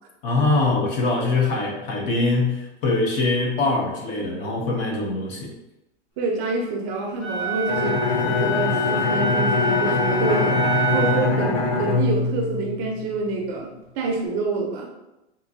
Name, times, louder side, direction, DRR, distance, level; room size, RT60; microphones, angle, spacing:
voice 1, 0.2-5.5, left 2 dB, 35° left, 1 dB, 0.6 m, -23 dB
voice 2, 6.2-10.6 10.9-13.7 14.0-14.9, right 3 dB, 35° right, 1 dB, 0.6 m, -27 dB
Wind instrument woodwind instrument, 7.2-11.4, right 1 dB, 15° left, 0.9 m, -26 dB
Bowed string instrument, 7.7-13.3, left 3 dB, 70° left, 0.9 m, -23 dB
3.6 x 2.6 x 2.6 m, 0.92 s
hypercardioid pair, 135°, 35 cm